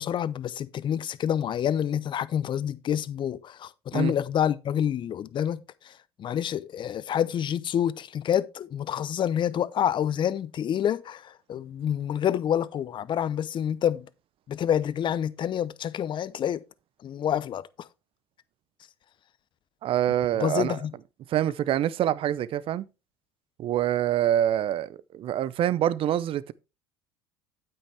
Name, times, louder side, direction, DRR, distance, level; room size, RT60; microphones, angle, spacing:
voice 1, 0.0-14.1 14.5-16.6 17.0-17.9 20.4-20.9, left 9 dB, 40° left, 0.7 m, -28 dB
voice 2, 19.8-20.8 21.3-22.9 23.6-26.5, right 11 dB, 50° right, 0.7 m, -25 dB
8.9 x 8.8 x 3.4 m
hypercardioid pair, 75°, 12 cm